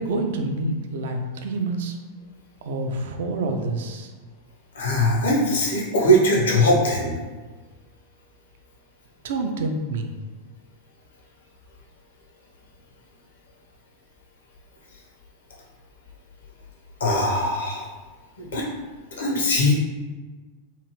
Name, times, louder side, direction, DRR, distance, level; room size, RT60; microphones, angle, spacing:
voice 1, 0.0-1.9 2.6-4.1 9.2-10.1, right 2 dB, 60° right, 4 dB, 0.4 m, -27 dB
voice 2, 4.8-7.1 17.0-17.8 18.4-18.6 19.2-19.7, equal, 65° left, -3 dB, 0.8 m, -20 dB
2.9 x 2.4 x 3.1 m, 1.3 s
figure-of-eight pair, 90°, 0 cm